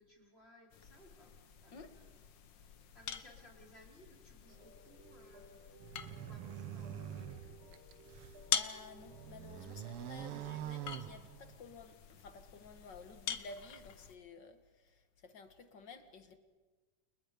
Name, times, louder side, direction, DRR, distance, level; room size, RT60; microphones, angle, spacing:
voice 1, 0.0-2.2 2.9-5.6 6.2-7.6 9.9-10.3, left 1 dB, 15° left, 4.5 m, -62 dB
sound 1, 0.7-14.2, left 8 dB, 85° left, 1.0 m, -45 dB
sound 2, 4.5-11.0, equal, 60° right, 5.2 m, -60 dB
sound 3, 5.8-8.4 8.9-11.7, right 11 dB, 80° right, 1.2 m, -45 dB
voice 2, 8.5-16.4, left 3 dB, 45° left, 1.6 m, -53 dB
30.0 x 29.5 x 5.1 m
omnidirectional pair, 3.9 m